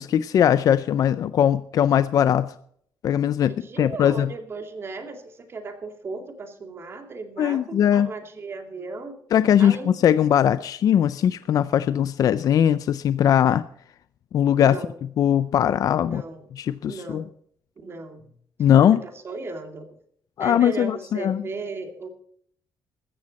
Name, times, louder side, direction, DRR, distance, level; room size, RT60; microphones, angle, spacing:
voice 1, 0.0-2.5 3.0-4.3 7.4-8.1 9.3-13.6 14.3-14.8 15.2-16.2 16.6-17.2 18.6-19.0 20.4-21.4, left 9 dB, 55° left, 14 dB, 0.5 m, -20 dB
voice 2, 3.4-9.2 9.6-10.0 14.6-15.0 16.0-16.5 16.9-17.3 17.8-18.3 18.9-20.0 20.4-22.1, right 3 dB, 35° right, 6 dB, 2.4 m, -36 dB
15.0 x 14.0 x 4.2 m, 0.63 s
cardioid pair, 155°, 7 cm